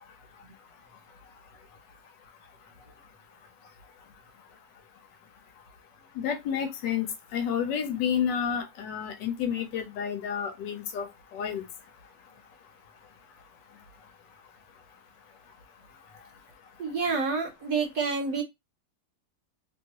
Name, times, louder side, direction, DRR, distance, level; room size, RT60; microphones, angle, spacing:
voice 1, 6.2-7.1 7.3-11.6, left 8 dB, 85° left, 1.2 m, -30 dB
voice 2, 16.8-18.4, right 4 dB, 60° right, 1.0 m, -28 dB
3.0 x 2.3 x 2.8 m
omnidirectional pair, 1.9 m